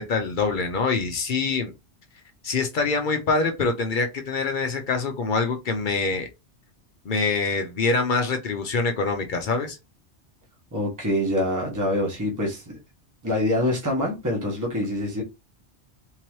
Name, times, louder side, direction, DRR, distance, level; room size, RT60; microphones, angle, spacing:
voice 1, 0.0-1.7 2.4-6.3 7.0-9.8, left 4 dB, 55° left, 0.7 m, -25 dB
voice 2, 10.7-12.8 13.2-15.2, left 1 dB, 15° right, 1.2 m, -25 dB
3.7 x 2.9 x 3.0 m
omnidirectional pair, 1.2 m